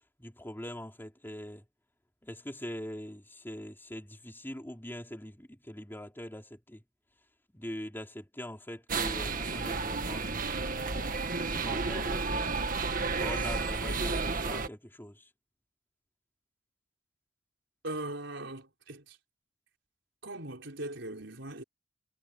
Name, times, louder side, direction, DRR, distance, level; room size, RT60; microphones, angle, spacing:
voice 1, 0.2-1.6 2.2-6.8 7.5-10.4 10.7-12.5 13.2-15.3, left 1 dB, 10° left, 3.6 m, -43 dB
sound 1, 8.9-14.7, right 4 dB, 45° right, 1.9 m, -32 dB
voice 2, 17.8-19.2 20.2-21.6, right 2 dB, 70° right, 5.6 m, -40 dB
head